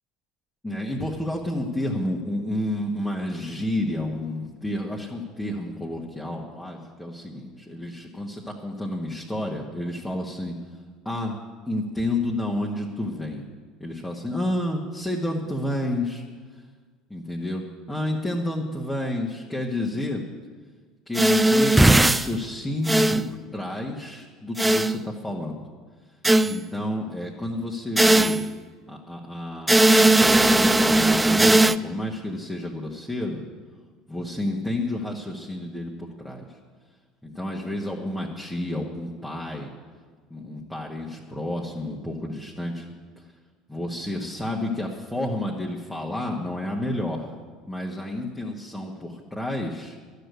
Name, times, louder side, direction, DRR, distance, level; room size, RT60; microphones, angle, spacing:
voice 1, 0.6-10.6 11.0-11.4 11.7-13.4 13.8-16.2 17.1-20.2 21.1-25.7 26.4-28.4 28.9-33.4 34.1-36.6 37.2-39.7 40.3-42.9 43.7-47.3 47.7-50.0, left 1 dB, 10° left, -2 dB, 1.6 m, -30 dB
sound 1, 21.1-22.3 22.9-23.3 24.6-25.0 26.2-26.5 28.0-28.5 29.7-31.8, right 2 dB, 10° right, 0.4 m, -18 dB
12.0 x 6.6 x 9.4 m, 1.5 s
hypercardioid pair, 70°, 0 cm